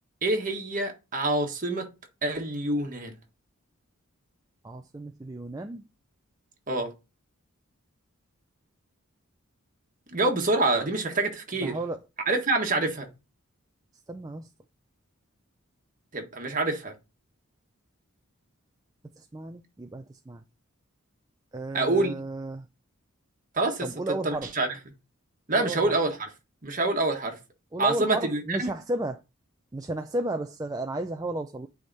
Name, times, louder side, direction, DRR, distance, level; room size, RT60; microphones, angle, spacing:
voice 1, 0.2-1.9 2.2-3.1 6.7-6.9 10.1-11.8 12.3-13.1 16.1-16.9 21.7-22.2 23.5-23.9 24.2-24.7 25.5-26.3 26.6-27.4 27.8-28.7, right 2 dB, 35° right, 1.5 m, -26 dB
voice 2, 4.6-5.8 11.6-12.1 14.1-14.5 19.2-20.4 21.5-22.7 23.8-24.5 25.5-25.9 27.7-29.2 29.7-31.7, right 2 dB, 15° right, 0.4 m, -33 dB
9.5 x 3.6 x 4.1 m
head